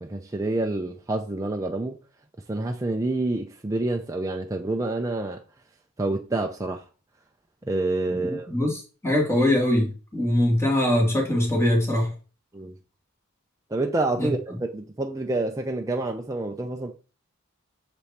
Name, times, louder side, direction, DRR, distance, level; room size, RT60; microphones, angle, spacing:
voice 1, 0.0-2.0 2.5-5.4 6.0-6.8 7.6-8.5 12.5-12.8 13.7-16.9, right 2 dB, 15° right, 0.5 m, -28 dB
voice 2, 8.2-12.1 14.2-14.3, left 1 dB, 15° left, 2.2 m, -22 dB
7.0 x 4.9 x 4.3 m
head